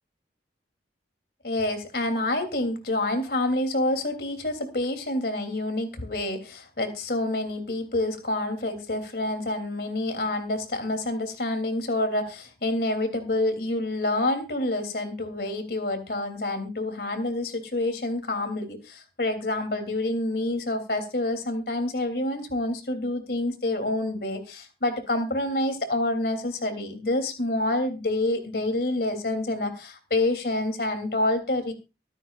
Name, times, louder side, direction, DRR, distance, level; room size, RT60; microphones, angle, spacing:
voice 1, 1.4-31.7, left 2 dB, 60° left, 6 dB, 3.2 m, -27 dB
24.5 x 9.1 x 2.5 m, 0.28 s
head